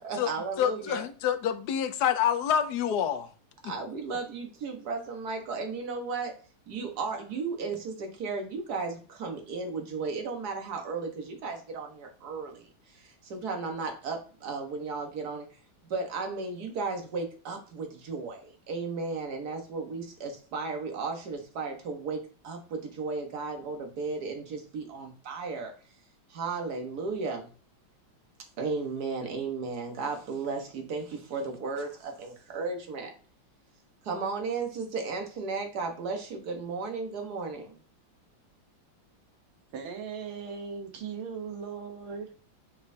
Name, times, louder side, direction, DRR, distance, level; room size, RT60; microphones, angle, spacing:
voice 1, 0.0-1.0 3.6-6.4 6.7-26.0 26.3-27.5 28.6-33.1 34.0-37.8, right 4 dB, 55° right, 1.7 m, -35 dB
voice 2, 0.6-3.3, left 9 dB, 65° left, 1.0 m, -27 dB
voice 3, 39.7-42.3, right 6 dB, 85° right, 1.9 m, -38 dB
6.9 x 5.0 x 2.7 m
omnidirectional pair, 2.2 m